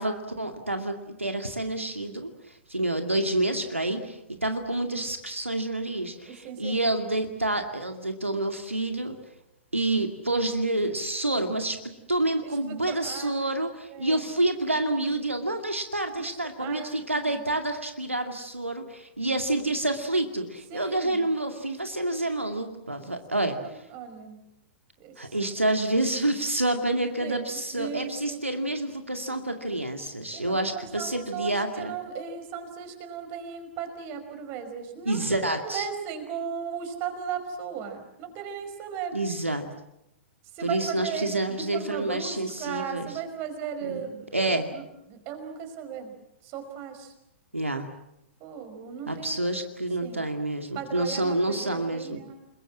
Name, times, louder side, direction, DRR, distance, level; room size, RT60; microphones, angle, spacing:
voice 1, 0.0-9.2 9.7-23.9 25.2-31.9 35.1-35.9 39.1-39.6 40.6-43.1 43.8-44.0 44.3-44.7 47.5-47.9 49.1-52.2, right 1 dB, 85° right, 5 dB, 2.3 m, -28 dB
voice 2, 6.1-6.8 12.4-13.5 13.9-14.3 16.2-17.5 20.7-21.3 23.0-24.4 25.0-25.4 26.9-28.4 30.3-39.2 40.5-46.1 46.4-47.1 48.4-49.3 50.0-50.3 50.7-52.4, right 7 dB, 35° right, 7 dB, 5.1 m, -37 dB
30.0 x 21.5 x 7.5 m, 0.83 s
figure-of-eight pair, 110°, 7 cm